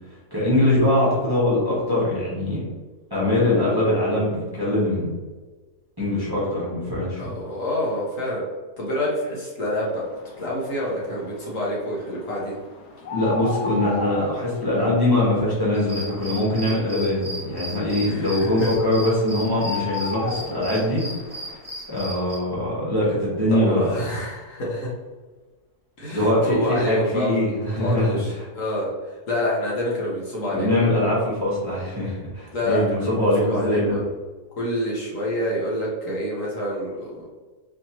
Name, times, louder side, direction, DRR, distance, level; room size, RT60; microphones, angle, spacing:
voice 1, 0.3-2.6 3.1-5.1 6.0-7.3 13.1-21.0 21.9-24.0 26.1-28.2 30.5-34.0, left 1 dB, 15° right, -8 dB, 1.1 m, -22 dB
voice 2, 7.1-8.4 8.8-10.0 10.4-12.6 18.1-18.7 23.5-24.9 26.0-30.7 32.5-34.0 34.6-37.3, left 1 dB, 60° left, -5 dB, 1.3 m, -27 dB
sound 1, 9.8-21.6, left 4 dB, 85° left, 1.2 m, -37 dB
sound 2, 15.7-22.4, right 1 dB, 45° right, 1.6 m, -36 dB
4.2 x 2.9 x 2.8 m, 1.3 s
omnidirectional pair, 1.7 m